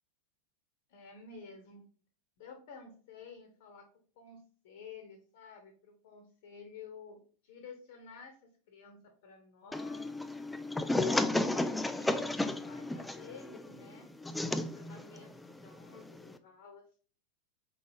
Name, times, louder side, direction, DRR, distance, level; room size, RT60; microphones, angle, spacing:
voice 1, 0.9-1.8 2.4-3.9 4.1-10.1 10.8-12.4 12.7-16.8, left 5 dB, 50° left, 4 dB, 1.0 m, -51 dB
sound 1, 9.7-16.4, left 2 dB, 5° left, 0.3 m, -34 dB
4.7 x 4.0 x 2.7 m, 0.41 s
figure-of-eight pair, 90°, 0 cm